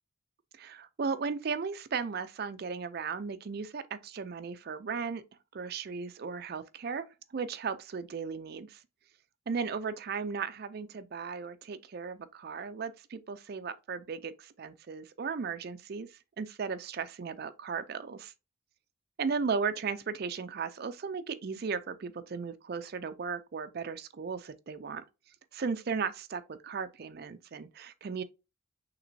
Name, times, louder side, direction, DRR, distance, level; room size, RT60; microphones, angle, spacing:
voice 1, 0.6-5.2 5.5-7.1 7.3-8.8 9.5-16.1 16.4-18.3 19.2-25.0 25.5-28.2, right 5 dB, 45° right, 0.4 m, -36 dB
5.8 x 3.3 x 2.6 m
head